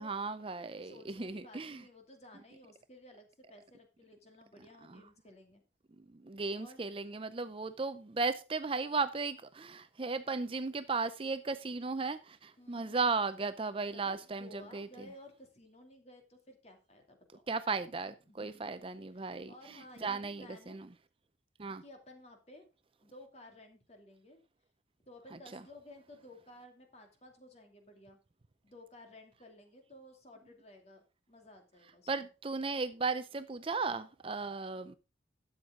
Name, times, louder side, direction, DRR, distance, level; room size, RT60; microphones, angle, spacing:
voice 1, 0.0-1.8 4.9-5.0 6.1-15.1 17.5-20.9 21.6-21.8 25.5-25.6 32.1-35.0, right 4 dB, 30° right, 0.5 m, -36 dB
voice 2, 0.8-5.6 6.5-6.8 12.6-13.2 13.9-17.2 18.3-18.7 19.2-20.8 21.8-22.7 23.0-24.4 25.1-28.2 28.6-32.3, left 1 dB, 35° left, 2.6 m, -55 dB
12.5 x 8.0 x 3.7 m
head